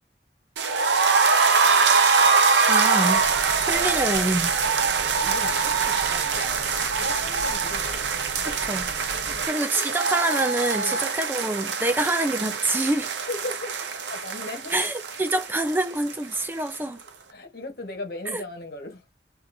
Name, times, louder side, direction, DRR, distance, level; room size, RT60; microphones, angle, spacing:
sound 1, 0.6-16.4 16.7-16.8 17.1-17.2, right 5 dB, 90° right, 0.6 m, -23 dB
voice 1, 2.7-3.2 3.7-4.5 8.5-8.9 9.5-13.1 14.7-17.0 18.3-18.4, right 1 dB, 10° right, 0.4 m, -26 dB
sound 2, 3.1-9.5, equal, 45° right, 0.9 m, -42 dB
voice 2, 5.1-8.1 9.3-9.5 10.7-11.1 13.2-15.2 17.3-19.0, left 2 dB, 60° left, 1.2 m, -38 dB
3.6 x 2.6 x 2.6 m
head